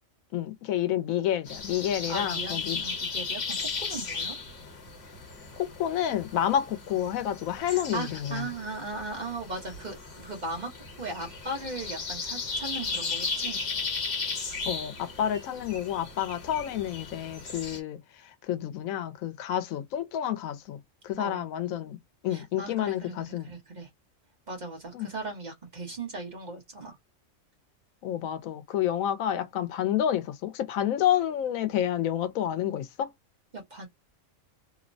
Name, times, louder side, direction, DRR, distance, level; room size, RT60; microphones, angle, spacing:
voice 1, 0.3-2.8 5.6-8.4 14.7-22.0 22.2-23.5 24.9-25.1 28.0-33.1, left 11 dB, 85° left, 1.0 m, -29 dB
sound 1, 1.5-17.8, left 4 dB, 55° left, 1.2 m, -36 dB
voice 2, 2.1-4.3 7.6-10.7 11.0-13.6 21.2-21.4 22.3-23.9 24.5-27.0 33.5-33.9, right 2 dB, 35° right, 1.0 m, -38 dB
2.9 x 2.1 x 2.6 m
omnidirectional pair, 1.4 m